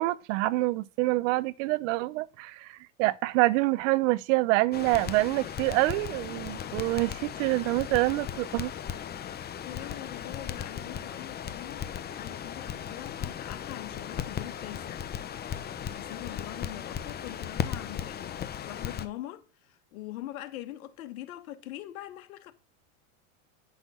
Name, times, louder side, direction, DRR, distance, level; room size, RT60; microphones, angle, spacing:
voice 1, 0.0-8.7, right 20 dB, 60° right, 0.7 m, -26 dB
Crackle, 4.7-19.1, left 9 dB, 25° left, 0.8 m, -37 dB
voice 2, 9.4-15.0 15.9-22.5, left 14 dB, 80° left, 1.4 m, -43 dB
9.7 x 6.4 x 5.5 m
supercardioid pair, 120°, 42 cm